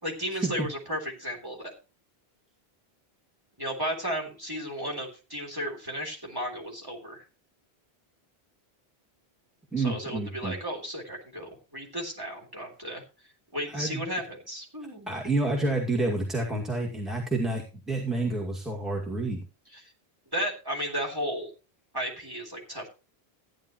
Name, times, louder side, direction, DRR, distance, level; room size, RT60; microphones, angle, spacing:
voice 1, 0.0-1.7 3.6-7.2 9.8-13.0 13.5-15.1 19.7-19.8 20.3-21.5 21.9-22.9, equal, 20° right, -1 dB, 3.6 m, -34 dB
voice 2, 9.7-10.5 13.7-14.0 15.1-19.4, right 2 dB, ahead, -3 dB, 2.2 m, -29 dB
14.5 x 10.0 x 3.1 m, 0.31 s
omnidirectional pair, 1.1 m